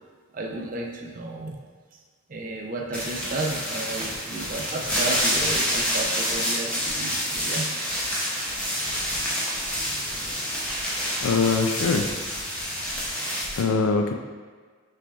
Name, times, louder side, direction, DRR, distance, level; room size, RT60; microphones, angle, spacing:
voice 1, 0.3-1.6 2.3-7.7, right 2 dB, 40° right, 1 dB, 0.5 m, -32 dB
sound 1, 2.9-13.6, equal, 5° left, 0.6 m, -28 dB
voice 2, 11.1-12.1 13.6-14.1, left 4 dB, 85° left, 5 dB, 0.4 m, -22 dB
5.8 x 3.3 x 2.4 m, 1.5 s
head